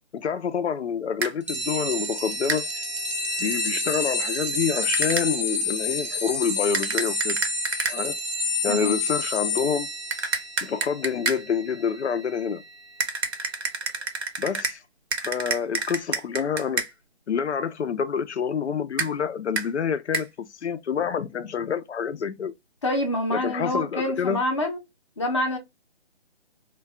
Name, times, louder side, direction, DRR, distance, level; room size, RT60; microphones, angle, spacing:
voice 1, 0.1-2.8 3.4-7.4 7.9-8.2 8.6-9.9 10.6-12.6 14.4-14.8 15.2-16.8 17.3-22.5 23.3-24.4, left 7 dB, 80° left, 0.5 m, -27 dB
sound 1, 1.2-1.3 2.5-2.6 4.9-5.3 6.7-8.0 10.1-11.4 13.0-14.8 15.1-16.9 19.0-19.1 19.6-19.7 20.1-20.3, right 4 dB, 70° right, 0.8 m, -28 dB
sound 2, 1.5-13.6, left 2 dB, 30° right, 0.5 m, -29 dB
voice 2, 8.7-9.0 22.8-24.8 25.2-25.6, left 1 dB, 30° left, 0.6 m, -26 dB
2.2 x 2.2 x 3.3 m
figure-of-eight pair, 155°, 33 cm